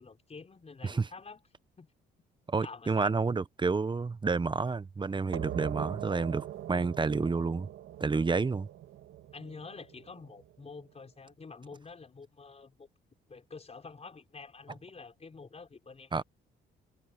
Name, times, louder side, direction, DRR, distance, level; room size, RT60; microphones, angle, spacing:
voice 1, 0.0-1.4 1.8-1.9 2.6-3.1 9.3-12.9 13.3-16.2, left 4 dB, 30° left, 5.9 m, -48 dB
voice 2, 2.5-7.7 8.0-8.7 16.1-16.2, right 4 dB, 25° right, 0.8 m, -30 dB
sound 1, 5.3-10.7, right 13 dB, 85° right, 1.8 m, -42 dB
cardioid pair, 90°, 20 cm